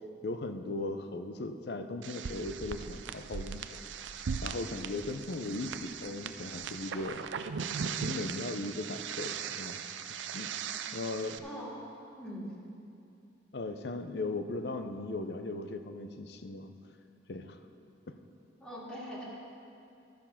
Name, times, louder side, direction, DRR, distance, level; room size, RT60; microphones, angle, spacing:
voice 1, 0.2-3.7 4.4-7.3 7.9-9.9 10.3-10.5 10.9-11.4 13.5-16.7 17.3-17.6 18.1-18.2, left 2 dB, 60° left, 8 dB, 0.6 m, -38 dB
sound 1, 2.0-11.4, right 6 dB, 85° right, 0.4 m, -39 dB
voice 2, 11.4-12.5 18.6-19.2, equal, 5° left, -7 dB, 2.0 m, -42 dB
12.0 x 7.1 x 5.7 m, 2.6 s
head